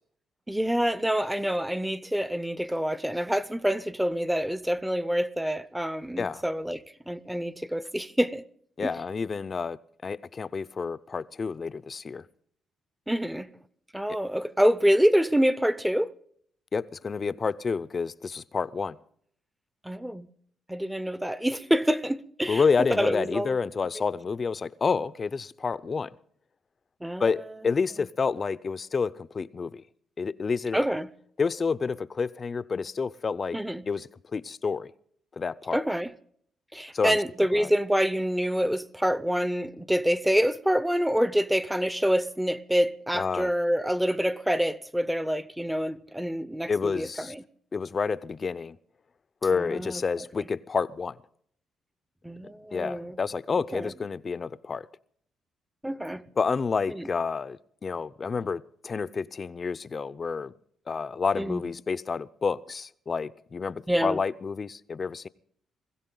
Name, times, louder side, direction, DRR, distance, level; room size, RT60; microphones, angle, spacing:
voice 1, 0.5-8.4 8.8-8.9 13.1-13.5 13.9-16.1 19.8-20.3 20.7-22.6 23.0-23.6 27.0-27.3 30.7-31.1 33.5-33.8 35.7-36.1 36.7-47.4 49.5-50.0 50.4-50.5 52.2-53.2 53.7-53.9 55.8-56.2 56.9-57.1 61.4-61.6 63.9-64.2, equal, 5° right, 0.7 m, -26 dB
voice 2, 8.8-9.8 10.0-12.2 16.7-19.0 22.5-26.1 27.2-29.8 30.2-30.8 31.4-33.6 33.9-34.9 35.4-35.8 36.9-37.2 37.5-37.7 43.1-43.5 46.7-47.3 47.7-48.8 49.4-51.2 52.7-54.9 56.4-60.5 60.9-65.3, left 5 dB, 35° left, 0.5 m, -29 dB
21.0 x 15.5 x 3.9 m
cardioid pair, 90°, 0 cm